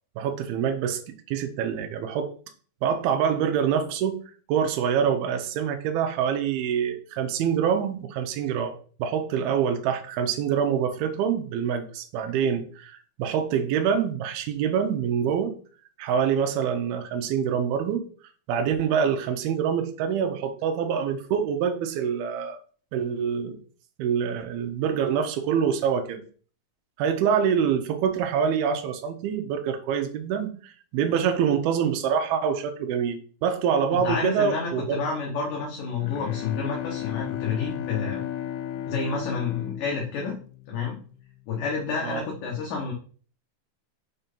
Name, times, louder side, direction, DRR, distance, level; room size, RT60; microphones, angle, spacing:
voice 1, 0.2-2.3 2.8-4.2 4.5-8.7 9.0-15.5 16.0-18.0 18.5-22.6 22.9-23.6 24.0-26.2 27.0-35.0 42.0-42.2, right 7 dB, 80° right, 6 dB, 2.8 m, -25 dB
voice 2, 33.9-38.2 38.9-40.3 40.7-41.0 41.5-42.9, left 5 dB, 65° left, -2 dB, 2.7 m, -29 dB
Bowed string instrument, 35.7-41.1, left 11 dB, 85° left, 2.7 m, -35 dB
6.6 x 4.4 x 5.3 m, 0.43 s
omnidirectional pair, 4.4 m